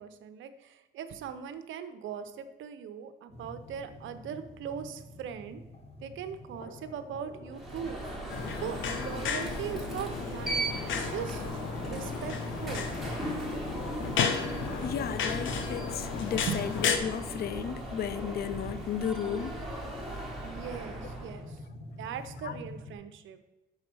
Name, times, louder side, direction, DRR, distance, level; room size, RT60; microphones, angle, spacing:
voice 1, 0.0-5.6 6.0-8.0 8.6-11.4 11.8-12.9 16.5-16.6 20.4-21.6 22.0-23.4, right 8 dB, 75° right, 0.7 m, -40 dB
sound 1, 3.3-22.9, left 1 dB, 30° left, 1.4 m, -48 dB
Alarm, 7.5-21.5, right 1 dB, ahead, 1.9 m, -38 dB
sound 2, 8.3-17.0, left 6 dB, 75° left, 0.8 m, -34 dB
voice 2, 14.8-19.7 21.0-21.2 22.4-22.6, left 8 dB, 50° left, 0.5 m, -34 dB
6.1 x 4.8 x 6.0 m
cardioid pair, 90°, 20 cm